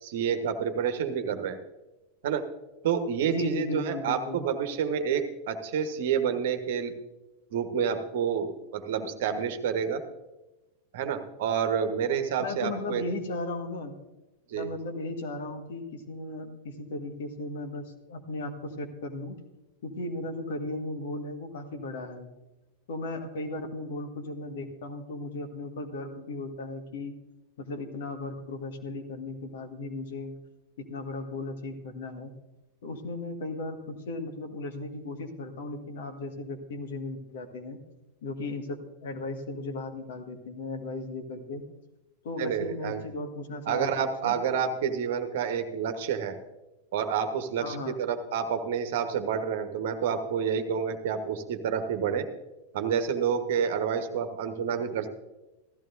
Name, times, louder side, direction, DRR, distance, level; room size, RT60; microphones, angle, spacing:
voice 1, 0.0-1.6 2.2-2.4 2.8-6.9 7.5-10.0 10.9-13.0 14.5-14.7 42.4-43.0 43.7-46.4 46.9-52.3 52.7-55.1, right 7 dB, 55° right, 7 dB, 1.2 m, -29 dB
voice 2, 3.3-4.5 12.4-13.9 14.5-19.4 19.8-22.3 22.9-27.1 27.6-30.4 30.8-32.3 32.8-37.8 38.2-41.6 42.2-44.3 47.6-48.0, left 2 dB, 55° left, 5 dB, 1.6 m, -36 dB
15.5 x 14.0 x 2.6 m, 1.1 s
figure-of-eight pair, 90°, 0 cm